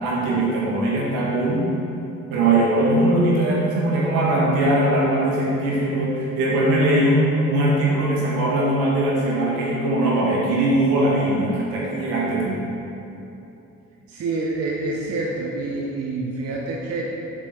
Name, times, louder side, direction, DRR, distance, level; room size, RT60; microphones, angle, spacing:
voice 1, 0.0-1.6 2.3-12.6, right 1 dB, 65° right, -5 dB, 1.3 m, -20 dB
voice 2, 14.1-17.0, right 3 dB, 40° right, -2 dB, 0.7 m, -27 dB
6.8 x 4.7 x 3.0 m, 2.9 s
figure-of-eight pair, 40°, 39 cm